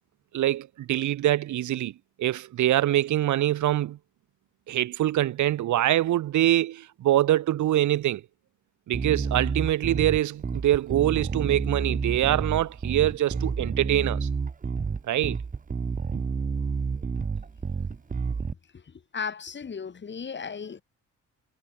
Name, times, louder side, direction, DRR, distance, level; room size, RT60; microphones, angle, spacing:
voice 1, 0.3-1.9 2.2-4.0 4.7-8.2 8.9-14.3 15.1-15.4, right 13 dB, 75° right, 1.6 m, -24 dB
Bass guitar, 8.9-18.5, right 5 dB, 25° right, 1.3 m, -29 dB
voice 2, 19.1-20.8, left 6 dB, 35° left, 2.7 m, -35 dB
cardioid pair, 90°, 30 cm